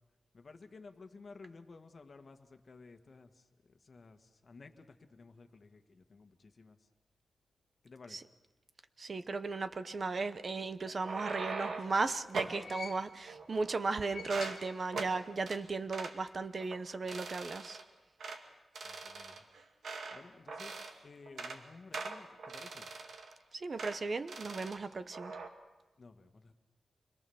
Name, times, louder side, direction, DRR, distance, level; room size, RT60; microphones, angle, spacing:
voice 1, 0.3-3.3 3.9-4.2 4.4-6.8 7.8-8.2 18.8-19.3 20.1-22.9 26.0-26.5, left 4 dB, 40° left, 7 dB, 1.6 m, -54 dB
voice 2, 9.0-17.8 23.5-25.3, right 3 dB, 40° right, 11 dB, 0.9 m, -36 dB
sound 1, 10.8-12.0 12.3-12.6 13.2-13.9 14.2-14.6 14.9-15.1 15.5-15.6 15.9-16.2 16.6-16.8 17.1-17.8 18.2-18.4 18.7-20.2 20.5-21.0 21.3-21.6 21.9-23.3 23.8-24.0 24.3-24.8 25.1-25.5, right 4 dB, 75° right, 2.3 m, -42 dB
sound 2, 11.5-13.4 13.9-15.3 15.6-15.7 16.8-16.9, left 5 dB, 90° left, 1.7 m, -50 dB
27.5 x 22.0 x 7.1 m, 1.1 s
wide cardioid pair, 150°, 0 cm